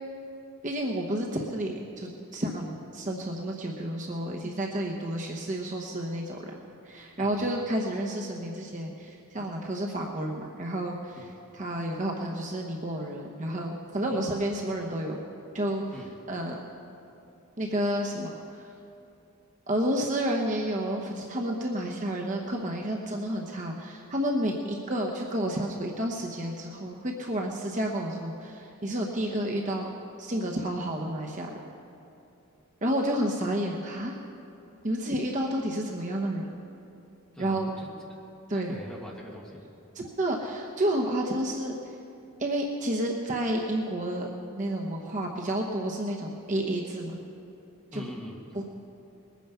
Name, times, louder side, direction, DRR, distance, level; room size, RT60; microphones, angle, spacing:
voice 1, 0.6-6.4 6.8-11.2 11.5-15.2 15.5-15.8 16.3-16.6 17.6-18.3 19.7-29.9 30.2-31.5 32.8-34.2 34.8-36.5 37.4-37.7 38.5-38.8 39.9-41.7 42.4-47.2 47.9-48.0 48.5-48.6, right 1 dB, 35° right, 0 dB, 0.9 m, -30 dB
voice 2, 7.2-7.5 11.1-11.3 14.1-14.2 15.9-16.1 37.3-37.9 38.5-39.7 47.9-48.6, equal, 5° left, -3 dB, 1.8 m, -43 dB
21.0 x 9.3 x 5.6 m, 2.8 s
head